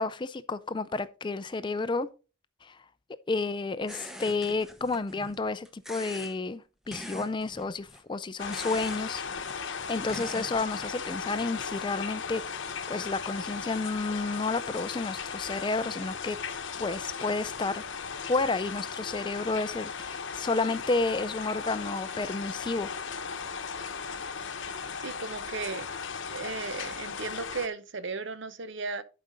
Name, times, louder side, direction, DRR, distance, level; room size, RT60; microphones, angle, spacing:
voice 1, 0.0-2.1 2.6-2.7 3.3-9.2 9.9-12.4 12.9-16.4 16.8-17.8 18.3-22.9, left 3 dB, 20° left, 0.4 m, -31 dB
sound 1, 3.9-5.4 5.7-6.4 6.9-8.0 8.5-9.0 9.3-10.9, equal, ahead, 0.8 m, -44 dB
sound 2, 8.4-27.7, left 5 dB, 60° left, 0.9 m, -37 dB
voice 2, 25.0-25.9 26.3-29.0, right 4 dB, 60° right, 0.7 m, -35 dB
11.0 x 5.0 x 3.9 m
head